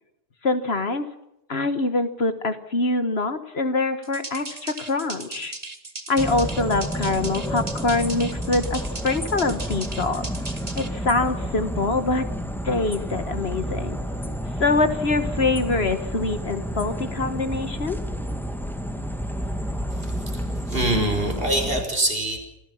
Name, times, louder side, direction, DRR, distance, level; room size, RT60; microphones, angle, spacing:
voice 1, 0.4-1.1 1.5-5.5 6.1-10.3 10.7-12.2 12.6-14.0 14.6-18.0, left 3 dB, 65° left, 10 dB, 1.7 m, -24 dB
sound 1, 4.0-10.9, right 3 dB, 35° right, 1.8 m, -37 dB
sound 2, 6.2-21.8, equal, ahead, 2.2 m, -30 dB
voice 2, 20.0-22.4, right 1 dB, 55° right, 3 dB, 5.5 m, -25 dB
26.5 x 16.0 x 7.3 m, 0.86 s
omnidirectional pair, 1.2 m